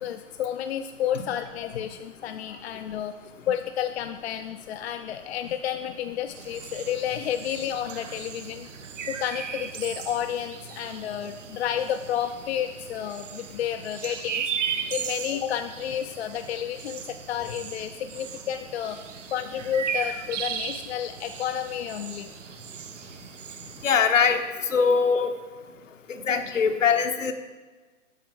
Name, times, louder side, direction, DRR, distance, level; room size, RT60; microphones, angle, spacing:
voice 1, 0.0-8.7 9.1-14.5 14.9-19.0 19.3-22.3 23.6-23.7, left 10 dB, 55° left, 7 dB, 0.5 m, -31 dB
sound 1, 6.3-23.8, right 7 dB, 70° right, 0.7 m, -37 dB
voice 2, 23.8-25.4 26.1-27.3, left 6 dB, 75° left, 6 dB, 1.0 m, -22 dB
8.0 x 5.9 x 4.7 m, 1.3 s
hypercardioid pair, 130°, 38 cm